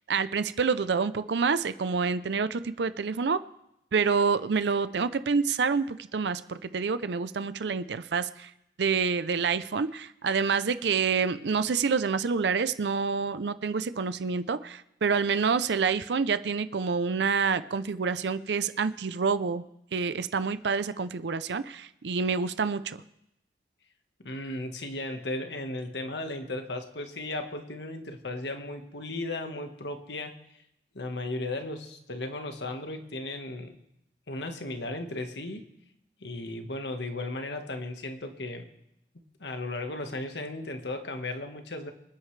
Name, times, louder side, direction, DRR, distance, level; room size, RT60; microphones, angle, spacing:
voice 1, 0.1-3.4 3.9-8.5 8.8-19.6 19.9-23.0, right 5 dB, 80° right, 13 dB, 0.5 m, -27 dB
voice 2, 24.2-30.4 30.9-33.8 34.3-35.7 36.2-38.7 39.4-41.9, left 2 dB, 85° left, 6 dB, 1.4 m, -35 dB
26.0 x 9.7 x 3.3 m, 0.83 s
head